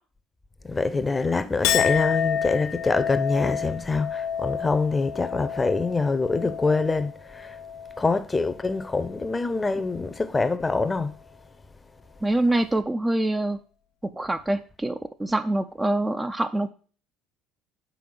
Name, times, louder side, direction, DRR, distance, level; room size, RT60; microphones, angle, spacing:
voice 1, 0.6-7.6 8.0-11.1, left 3 dB, 20° left, 0.8 m, -25 dB
Chink clink, 1.6-8.2 8.6-9.2, left 8 dB, 70° left, 0.5 m, -30 dB
voice 2, 12.2-13.6 14.0-16.7, right 1 dB, 15° right, 0.6 m, -25 dB
5.6 x 4.4 x 6.1 m
hypercardioid pair, 60°, 0 cm